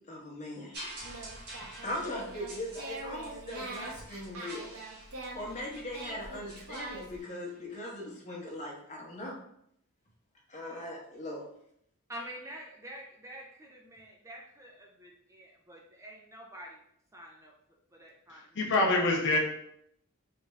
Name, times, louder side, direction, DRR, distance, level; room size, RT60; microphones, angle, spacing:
voice 1, 0.1-0.8 1.8-4.7 5.3-9.4 10.5-11.4, left 1 dB, 35° left, -3 dB, 0.9 m, -39 dB
sound 1, 0.7-7.7 8.5-8.6, right 1 dB, 50° right, 1.4 m, -49 dB
Singing, 1.0-7.2, right 2 dB, 85° right, 0.7 m, -44 dB
voice 2, 12.1-16.8 17.1-17.5 17.9-18.7, right 1 dB, 15° right, -1 dB, 0.4 m, -47 dB
voice 3, 18.3-19.4, left 2 dB, 55° left, -1 dB, 0.6 m, -26 dB
3.4 x 2.6 x 3.1 m, 0.72 s
head